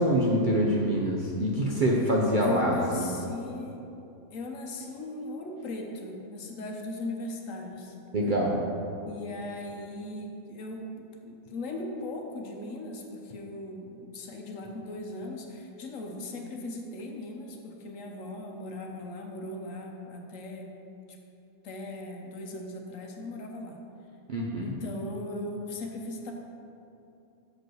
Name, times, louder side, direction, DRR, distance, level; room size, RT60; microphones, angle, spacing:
voice 1, 0.0-3.1 8.1-8.6 24.3-24.7, equal, 50° right, -3 dB, 0.6 m, -25 dB
voice 2, 2.4-3.8 4.3-8.3 9.0-20.7 21.6-23.7 24.6-26.3, left 2 dB, 65° left, 2 dB, 1.1 m, -38 dB
6.3 x 5.1 x 6.1 m, 2.8 s
omnidirectional pair, 1.6 m